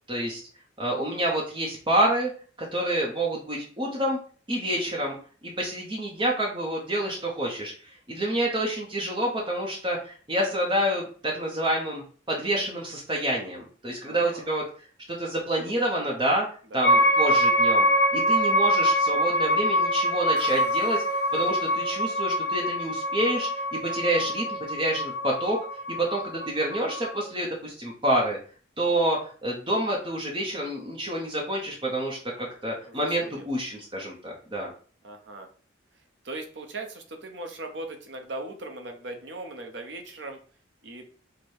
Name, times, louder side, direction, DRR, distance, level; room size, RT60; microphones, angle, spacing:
voice 1, 0.1-0.4 0.8-2.3 2.7-4.2 4.5-5.2 5.4-14.6 15.1-16.5 16.7-17.9 18.1-28.4 28.8-34.7, right 1 dB, 25° right, -2 dB, 0.8 m, -28 dB
voice 2, 14.0-14.5 16.7-17.1 23.9-24.3 32.8-33.4 35.0-35.5 36.2-40.4 40.8-41.1, right 2 dB, 65° right, 5 dB, 0.8 m, -39 dB
sound 1, 16.8-27.3, equal, 50° left, 0.9 m, -24 dB
4.8 x 2.2 x 4.4 m, 0.43 s
head